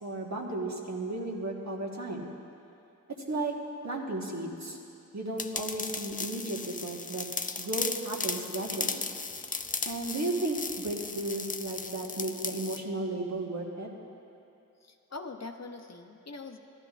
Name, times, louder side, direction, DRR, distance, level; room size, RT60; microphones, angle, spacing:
voice 1, 0.0-2.3 3.3-3.6 3.8-4.8 5.1-7.3 7.6-9.1 9.8-13.9, right 2 dB, 60° right, -2 dB, 1.4 m, -34 dB
sound 1, 5.4-12.8, left 4 dB, 25° left, 0.4 m, -36 dB
voice 2, 14.8-16.6, left 3 dB, 55° left, 5 dB, 0.7 m, -43 dB
15.0 x 12.0 x 2.4 m, 2.7 s
wide cardioid pair, 50°, 32 cm